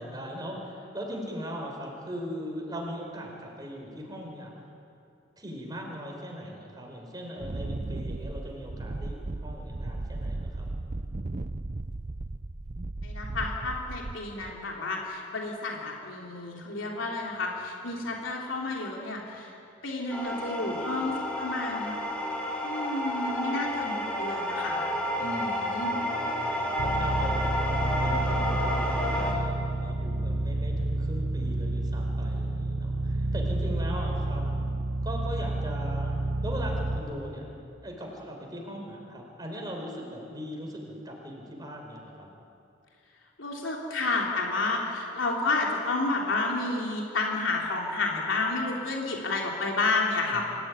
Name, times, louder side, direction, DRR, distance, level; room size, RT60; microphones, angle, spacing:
voice 1, 0.0-4.6 5.4-10.7 25.2-34.5 35.0-37.5 37.8-42.3 50.3-50.4, equal, 20° right, 0 dB, 5.2 m, -39 dB
Wind, 7.4-14.5, right 2 dB, 40° right, 0.6 m, -36 dB
voice 2, 13.0-19.6 19.8-21.9 22.6-24.9 25.2-25.9 43.4-50.4, left 3 dB, 85° left, -1 dB, 3.2 m, -30 dB
sound 1, 20.1-29.3, equal, 5° left, 3.8 m, -30 dB
sound 2, 26.8-37.0, right 2 dB, 75° right, 1.4 m, -29 dB
26.0 x 15.5 x 9.8 m, 2.6 s
head